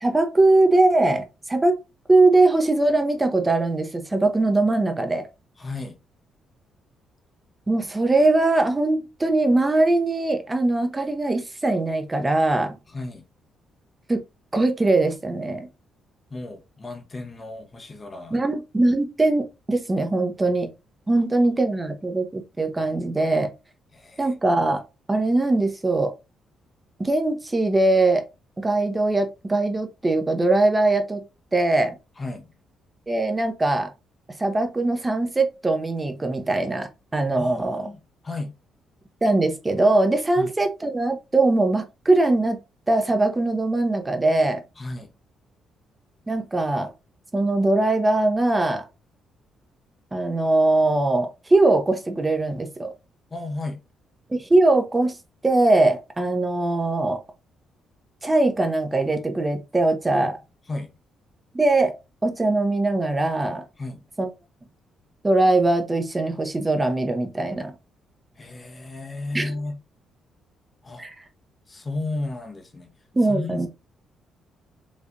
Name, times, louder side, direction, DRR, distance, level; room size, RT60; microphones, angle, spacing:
voice 1, 0.0-1.8 2.1-5.3 7.7-12.8 14.1-14.2 14.5-15.7 18.3-20.7 21.1-23.5 24.2-24.8 25.1-26.1 27.0-28.2 28.6-31.2 31.5-32.0 33.1-33.9 34.4-37.9 39.2-42.6 42.9-44.6 46.3-46.9 47.3-48.8 50.1-52.9 54.3-55.2 55.4-57.2 58.2-60.3 61.5-61.9 62.2-63.6 64.2-64.3 65.2-67.7 69.3-69.5 71.0-71.2 73.1-73.7, right 2 dB, 20° right, 1.0 m, -21 dB
voice 2, 5.6-6.0 12.9-13.2 16.3-18.4 23.9-24.3 32.2-32.5 37.3-38.5 40.4-40.5 44.8-45.1 53.3-53.8 60.1-60.3 60.7-60.9 63.8-64.0 68.4-69.8 70.8-71.1 71.7-72.9 73.2-73.7, left 2 dB, 30° left, 1.1 m, -33 dB
5.2 x 3.3 x 2.7 m
cardioid pair, 90°, 0 cm